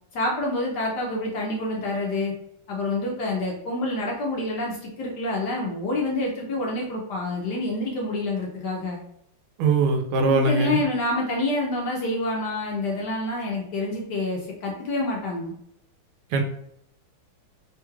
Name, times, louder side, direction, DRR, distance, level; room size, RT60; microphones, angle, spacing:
voice 1, 0.1-2.3 2.7-9.0 10.3-15.5, left 2 dB, 70° left, -1 dB, 1.1 m, -27 dB
voice 2, 9.6-10.8 16.3-16.4, right 3 dB, 90° right, 4 dB, 1.5 m, -21 dB
3.7 x 3.0 x 2.3 m, 0.73 s
omnidirectional pair, 2.3 m